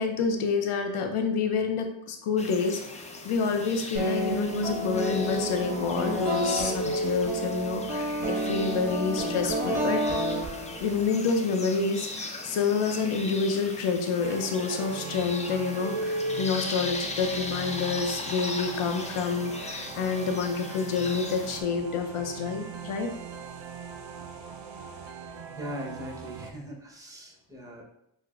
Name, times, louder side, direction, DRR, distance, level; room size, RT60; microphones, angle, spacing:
voice 1, 0.0-10.0 10.8-23.1, left 5 dB, 85° left, 5 dB, 0.7 m, -28 dB
sound 1, 2.4-21.6, left 1 dB, 15° left, 0.4 m, -37 dB
sound 2, 4.0-11.1, right 1 dB, 30° right, 1.4 m, -30 dB
sound 3, 14.2-26.5, right 6 dB, 60° right, 0.5 m, -42 dB
voice 2, 25.5-27.8, equal, 5° right, -1 dB, 0.9 m, -40 dB
6.1 x 2.1 x 2.4 m, 0.78 s
cardioid pair, 70°, 49 cm